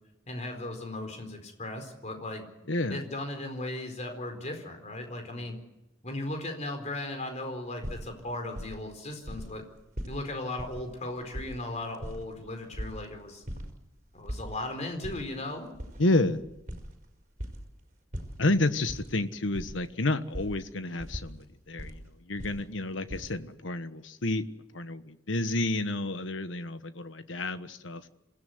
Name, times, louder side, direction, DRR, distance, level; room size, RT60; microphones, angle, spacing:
voice 1, 0.3-2.4 2.9-5.6 6.0-9.6 10.1-13.4 14.1-15.7, left 2 dB, 35° left, 5 dB, 4.4 m, -37 dB
voice 2, 2.7-3.1 5.3-5.5 16.0-16.4 18.4-24.4 24.7-28.1, left 2 dB, 75° left, 11 dB, 1.3 m, -30 dB
sound 1, 7.8-9.0 9.2-9.5 9.8-10.2 10.6-10.8 11.2-13.0 13.4-13.7 14.0-14.5 14.9-15.2 15.7-17.6 18.1-19.1 19.4-19.9 20.3-20.5 21.0-21.9 22.3-23.3, equal, 40° right, 5.0 m, -39 dB
27.0 x 16.5 x 8.0 m, 0.95 s
head